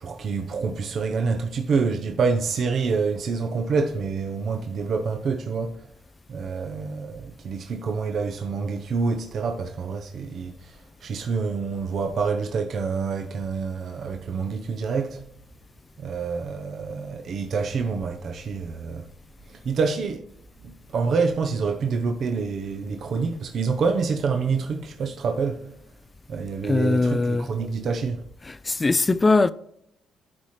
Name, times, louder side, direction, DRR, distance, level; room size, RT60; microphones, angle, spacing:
voice 1, 0.0-5.9 6.3-15.2 16.0-19.1 19.5-20.3 20.6-25.7 26.3-28.2, right 5 dB, 60° right, 0.7 m, -27 dB
voice 2, 26.6-27.5 28.4-29.5, left 3 dB, 25° left, 0.3 m, -21 dB
12.0 x 4.3 x 3.2 m
cardioid pair, 90°, 0 cm